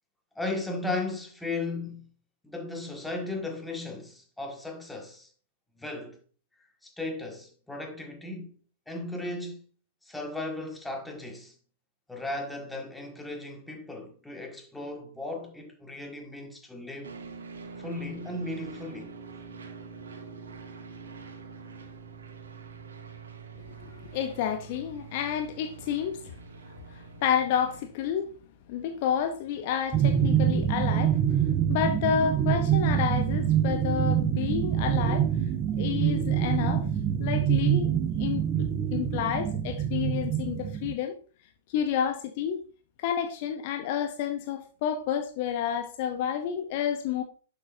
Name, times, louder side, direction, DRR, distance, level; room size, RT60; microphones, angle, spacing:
voice 1, 0.4-2.1 2.4-5.3 5.8-6.2 6.8-8.6 8.9-9.6 10.1-11.5 12.1-17.1 17.8-19.1, left 2 dB, 5° left, 1.8 m, -36 dB
sound 1, 17.0-27.8, right 5 dB, 65° right, 1.8 m, -45 dB
voice 2, 23.6-26.3 26.9-28.3 28.7-31.2 31.7-35.3 35.8-36.8 37.2-37.9 38.2-41.2 41.7-42.6 43.0-47.2, left 8 dB, 45° left, 0.8 m, -30 dB
sound 2, 29.9-40.9, right 9 dB, 25° right, 0.7 m, -25 dB
11.0 x 6.8 x 2.7 m
figure-of-eight pair, 110°, 0 cm